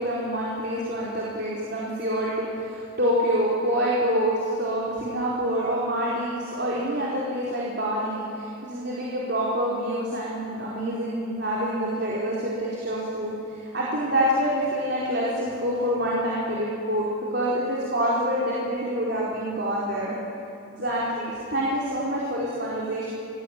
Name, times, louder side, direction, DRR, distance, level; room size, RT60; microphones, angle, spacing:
voice 1, 0.0-20.1 20.7-23.1, equal, 55° right, -6 dB, 4.6 m, -26 dB
27.0 x 20.0 x 9.2 m, 2.7 s
head